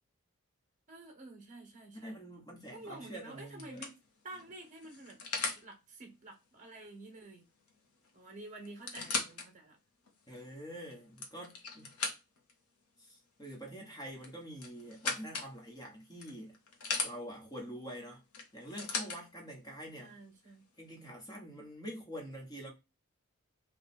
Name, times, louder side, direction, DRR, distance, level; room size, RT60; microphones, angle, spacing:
voice 1, 0.9-2.2 2.7-4.0 4.2-5.2 5.6-7.5 8.1-9.8 20.0-20.6, right 2 dB, 35° right, 1.1 m, -50 dB
voice 2, 2.0-3.9 10.3-11.9 13.0-16.6 17.0-18.2 18.5-20.1 20.8-22.7, equal, 15° left, 1.1 m, -46 dB
sound 1, 2.7-3.0 3.6-5.7 7.7-7.8 8.0-8.1 8.7-9.5 10.1-10.2 10.9-12.5 14.2-15.5 16.2-17.1 18.3-19.2 20.1-20.2, left 4 dB, 85° left, 1.0 m, -38 dB
3.2 x 2.4 x 4.2 m
head